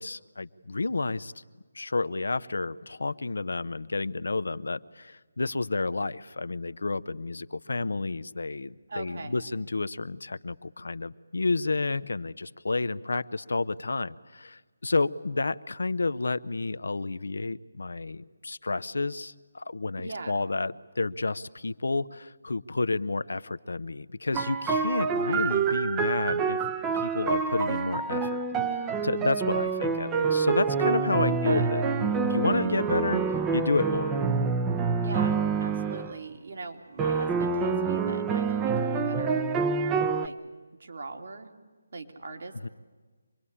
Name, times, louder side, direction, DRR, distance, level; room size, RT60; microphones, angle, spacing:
voice 1, 0.0-1.3 1.7-26.6 26.9-31.8 32.2-34.2 42.6-42.7, left 3 dB, 75° left, 14 dB, 0.8 m, -30 dB
voice 2, 8.9-9.5 20.0-20.5 25.0-25.5 31.3-31.7 35.0-39.5 40.1-40.4 40.8-41.5 41.9-42.7, right 3 dB, 60° right, 3 dB, 3.0 m, -40 dB
sound 1, 24.3-36.2 37.0-40.3, right 5 dB, 15° right, 0.8 m, -27 dB
25.5 x 21.0 x 9.9 m, 1.3 s
figure-of-eight pair, 155°, 0 cm